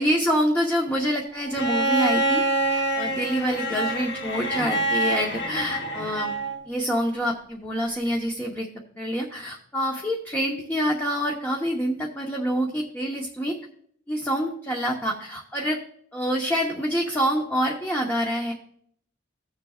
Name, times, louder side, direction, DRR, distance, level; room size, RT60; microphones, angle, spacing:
voice 1, 0.0-2.4 2.7-6.3 6.7-8.7 9.0-13.5 14.1-15.8 16.1-18.5, equal, 10° left, -2 dB, 1.1 m, -26 dB
Bowed string instrument, 1.6-6.6 8.1-8.2, right 1 dB, 55° left, 1.2 m, -26 dB
16.5 x 7.3 x 2.4 m, 0.63 s
head